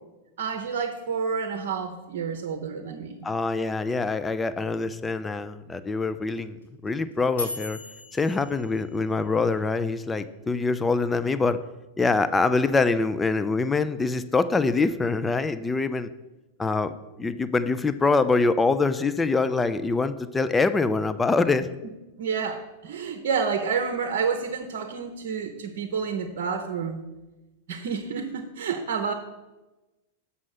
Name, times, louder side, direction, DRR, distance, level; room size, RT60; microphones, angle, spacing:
voice 1, 0.4-3.2 22.2-27.0 27.7-29.1, right 6 dB, 55° right, 5 dB, 0.8 m, -29 dB
voice 2, 3.2-6.6 6.8-7.8 8.1-11.6 12.0-16.1 16.6-16.9 17.2-21.7, left 3 dB, 10° left, 12 dB, 0.5 m, -24 dB
sound 1, 6.4-9.6, left 3 dB, 80° left, 3.4 m, -38 dB
7.3 x 5.5 x 6.4 m, 1.1 s
figure-of-eight pair, 95°, 0 cm